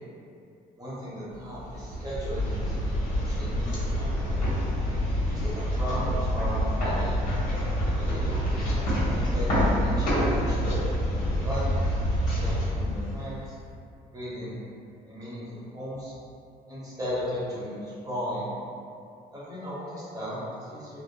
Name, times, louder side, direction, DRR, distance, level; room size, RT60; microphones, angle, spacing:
voice 1, 0.8-2.8 3.1-4.2 5.3-7.2 7.9-10.9 11.4-11.7 12.3-13.6 14.1-14.6 15.0-16.1 16.7-18.5 19.3-21.0, equal, 20° right, -9 dB, 0.8 m, -36 dB
sound 1, 1.5-13.6, equal, 50° left, 1.2 m, -27 dB
2.8 x 2.0 x 2.2 m, 2.5 s
cardioid pair, 110°, 17 cm